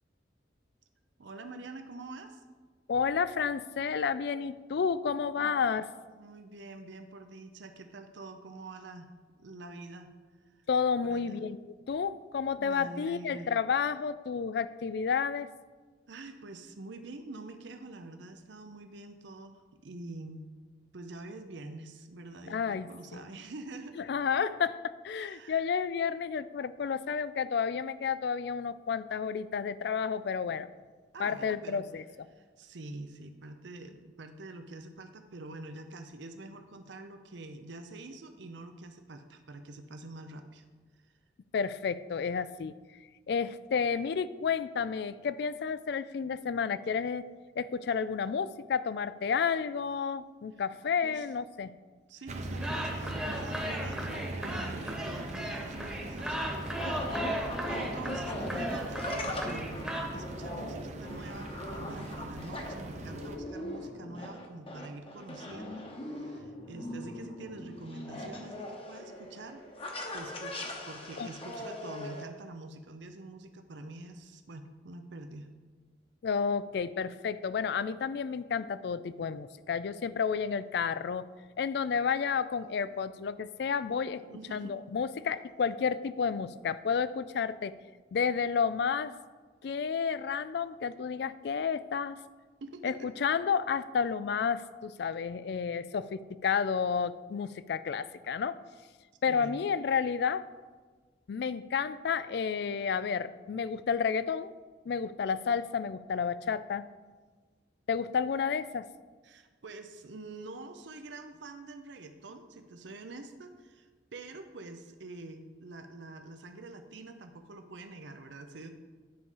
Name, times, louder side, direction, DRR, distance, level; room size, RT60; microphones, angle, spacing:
voice 1, 1.2-2.4 5.4-5.6 6.2-9.1 9.4-10.1 10.5-10.6 11.0-11.4 12.6-13.5 16.1-20.5 20.9-24.1 25.1-25.6 31.1-31.8 32.3-40.6 41.1-41.2 51.0-51.3 52.1-59.8 60.1-69.6 70.1-75.5 84.2-84.8 92.6-92.9 99.3-99.6 109.2-118.7, right 2 dB, 70° right, 7 dB, 0.6 m, -46 dB
voice 2, 2.9-5.9 10.7-15.5 22.5-23.2 24.0-30.7 31.2-32.0 41.5-42.7 43.3-47.3 47.6-51.7 71.2-71.3 76.2-81.3 81.6-84.2 84.5-87.7 88.1-89.1 89.6-92.2 92.8-98.6 99.2-100.5 101.3-104.5 104.9-106.9 107.9-108.9, left 6 dB, 60° left, 16 dB, 0.3 m, -31 dB
sound 1, 52.3-63.4, right 1 dB, 35° right, 0.7 m, -40 dB
sound 2, 52.5-60.0, equal, 5° right, 1.1 m, -37 dB
sound 3, 55.6-72.2, left 1 dB, 30° left, 1.0 m, -40 dB
9.5 x 4.8 x 5.5 m, 1.4 s
head